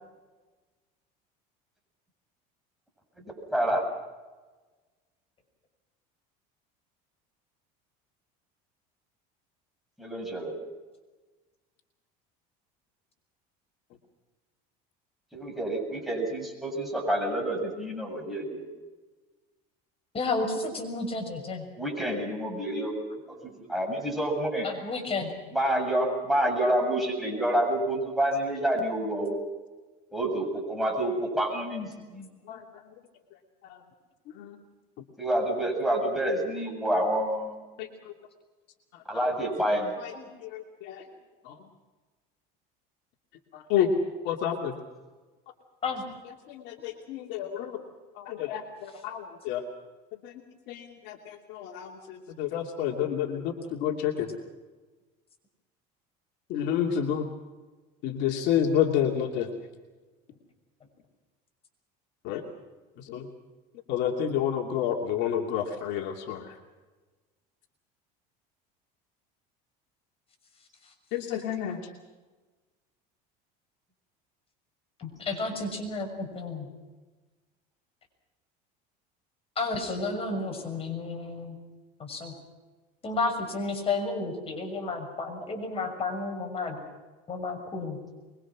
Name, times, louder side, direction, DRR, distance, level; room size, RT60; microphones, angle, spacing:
voice 1, 3.5-3.8 10.0-10.5 15.3-18.6 21.8-23.0 23.6-24.7 25.5-29.4 30.1-32.3 35.2-37.6 39.1-39.9, right 1 dB, ahead, 0 dB, 7.4 m, -28 dB
voice 2, 20.1-21.6 24.6-25.3 40.1-40.3 45.8-46.0 75.0-76.7 79.6-81.6 82.0-82.3 83.0-86.8 87.3-88.0, left 3 dB, 30° left, 3 dB, 6.5 m, -32 dB
voice 3, 40.5-41.0 41.5-41.6 43.5-43.9 44.2-44.7 46.5-47.8 48.2-49.6 50.2-50.3 50.7-54.3 56.5-57.3 58.0-59.5 62.2-62.4 63.1-63.3 63.9-66.4 71.1-71.8, left 9 dB, 65° left, 1 dB, 2.7 m, -29 dB
24.5 x 22.5 x 6.2 m, 1.3 s
supercardioid pair, 110°, 19 cm